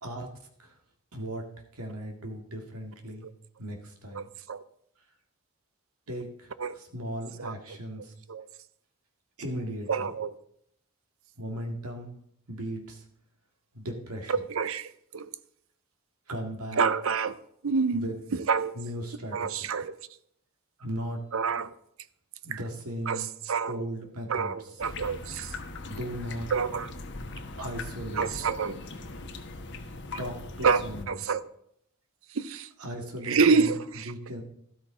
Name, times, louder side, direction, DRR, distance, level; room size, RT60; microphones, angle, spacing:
voice 1, 0.0-0.7 1.1-3.3 3.6-4.3 6.1-8.1 9.4-10.1 11.4-12.2 12.5-13.0 13.7-14.3 16.3-16.8 17.9-18.1 18.7-19.7 20.8-21.2 22.4-23.3 23.7-24.5 25.9-26.5 27.6-28.3 30.1-31.2 32.8-33.8 34.1-34.4, equal, 85° right, 2.0 m, -37 dB
voice 2, 4.1-4.6 6.6-6.8 7.4-7.5 8.3-8.5 9.9-10.3 14.3-15.3 16.8-17.4 17.6-18.0 18.3-18.8 19.3-20.0 21.3-21.8 22.5-22.6 23.1-23.8 24.3-25.5 26.5-26.9 28.2-28.8 30.6-31.4 32.3-32.7 33.3-34.1, right 5 dB, 65° right, 0.6 m, -27 dB
sound 1, 24.8-31.0, left 3 dB, 50° left, 1.2 m, -40 dB
13.0 x 12.5 x 3.8 m
head